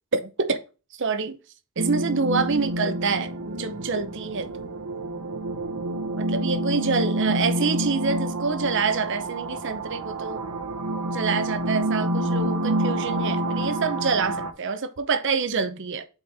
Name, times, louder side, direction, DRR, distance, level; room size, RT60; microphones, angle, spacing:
voice 1, 0.1-0.6 1.0-1.4 1.8-4.7 6.2-10.4 11.0-16.1, right 5 dB, 55° right, 0.7 m, -26 dB
sound 1, 1.8-14.5, right 1 dB, 90° right, 0.9 m, -28 dB
6.9 x 4.4 x 3.4 m
head